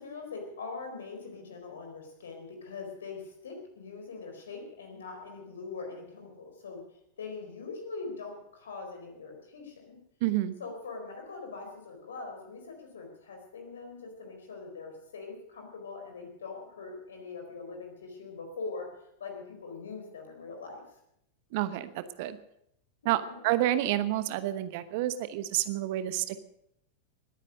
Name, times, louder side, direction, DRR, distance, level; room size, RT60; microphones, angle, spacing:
voice 1, 0.0-6.8 7.2-10.0 10.6-18.9 19.2-20.8 23.0-23.5, left 4 dB, 65° left, 4 dB, 4.4 m, -42 dB
voice 2, 10.2-10.5 21.5-22.4 23.0-26.4, right 14 dB, 50° right, 13 dB, 1.0 m, -29 dB
20.0 x 9.7 x 6.5 m, 0.76 s
figure-of-eight pair, 90°, 0 cm